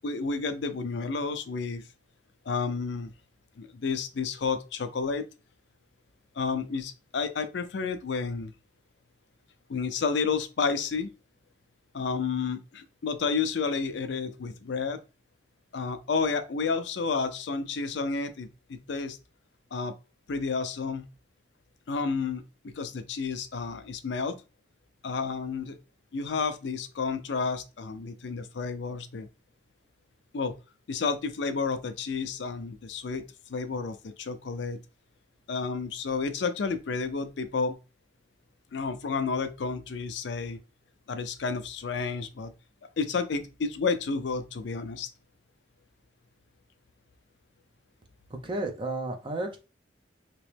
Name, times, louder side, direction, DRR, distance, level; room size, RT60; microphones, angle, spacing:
voice 1, 0.0-1.8 2.5-3.1 3.6-5.3 6.4-8.5 9.7-11.1 11.9-15.0 15.7-19.2 19.7-19.9 20.3-21.1 21.9-24.4 25.0-25.8 26.1-29.3 30.3-30.5 30.9-33.2 33.5-34.8 35.5-37.8 38.7-40.6 41.1-42.5 43.0-45.1, left 4 dB, 65° left, 0.4 m, -31 dB
voice 2, 48.3-49.6, right 2 dB, 25° right, 0.6 m, -32 dB
3.0 x 3.0 x 3.3 m
head